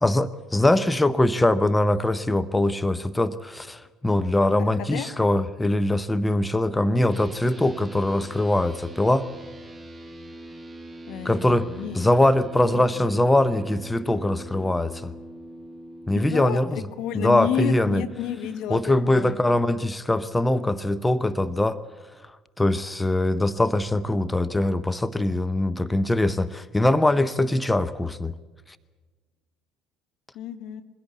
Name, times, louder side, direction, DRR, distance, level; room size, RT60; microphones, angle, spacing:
voice 1, 0.0-9.3 11.2-11.7 11.9-15.1 16.1-16.9 17.1-18.0 18.7-21.8 22.2-28.3, left 1 dB, 10° left, 13 dB, 0.8 m, -22 dB
sound 1, 7.1-16.5, right 2 dB, 20° right, 1.4 m, -42 dB
voice 2, 11.1-12.1 12.7-12.9 16.1-19.4 30.3-30.8, left 9 dB, 60° left, 8 dB, 1.4 m, -31 dB
22.0 x 16.5 x 8.2 m, 1.3 s
hypercardioid pair, 60°, 0 cm